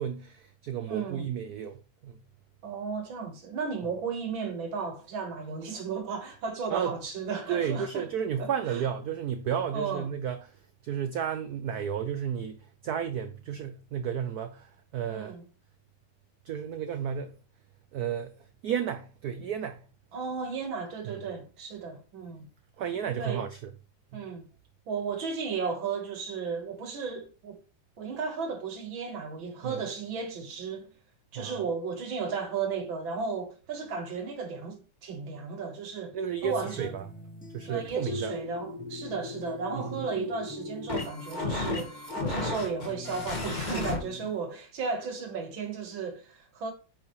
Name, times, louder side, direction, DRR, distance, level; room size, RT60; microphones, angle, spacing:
voice 1, 0.0-2.2 6.7-6.9 7.5-15.4 16.4-17.4 17.9-19.8 21.0-21.2 22.8-23.7 24.1-24.3 29.6-29.8 31.3-31.6 36.1-37.0 37.5-38.3 39.7-40.1, right 8 dB, 85° right, 0.8 m, -33 dB
voice 2, 0.9-1.3 2.6-8.1 8.4-8.8 9.7-10.1 15.1-15.4 20.1-22.5 23.2-23.5 24.1-24.5 24.9-27.6 28.0-30.9 31.3-36.9 37.7-46.7, right 5 dB, 65° right, 2.2 m, -34 dB
sound 1, 36.4-44.4, left 1 dB, 10° left, 0.5 m, -47 dB
sound 2, 38.1-44.0, left 3 dB, 25° left, 1.3 m, -34 dB
8.7 x 6.3 x 3.2 m
omnidirectional pair, 2.4 m